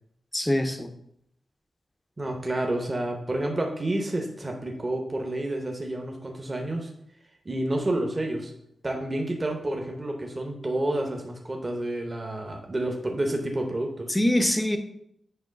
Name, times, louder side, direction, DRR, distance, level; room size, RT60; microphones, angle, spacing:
voice 1, 0.3-0.9 14.1-14.8, left 1 dB, 10° left, 7 dB, 0.6 m, -23 dB
voice 2, 2.2-6.9 7.4-8.5 8.8-14.1, right 1 dB, 25° right, 2 dB, 0.8 m, -29 dB
7.7 x 3.0 x 5.1 m, 0.75 s
wide cardioid pair, 140°, 0 cm